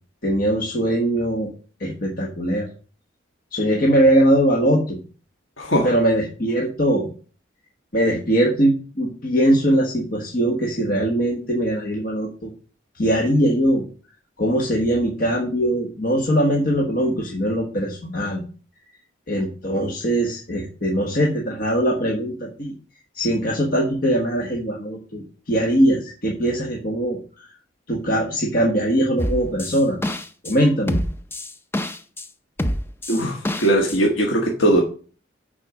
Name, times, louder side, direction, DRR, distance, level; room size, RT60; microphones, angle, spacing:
voice 1, 0.2-1.5 1.8-2.7 3.5-5.0 5.8-7.1 7.9-12.5 12.9-13.8 14.4-18.4 19.3-22.7 23.1-27.2 27.9-30.0 30.4-31.0, right 1 dB, 45° left, -1 dB, 1.3 m, -21 dB
voice 2, 5.6-5.9 33.1-34.8, right 1 dB, 75° left, 0 dB, 1.5 m, -19 dB
sound 1, 29.2-30.5 30.9-32.3 32.6-34.0, left 1 dB, 10° left, 0.5 m, -26 dB
9.4 x 4.4 x 6.3 m, 0.40 s
head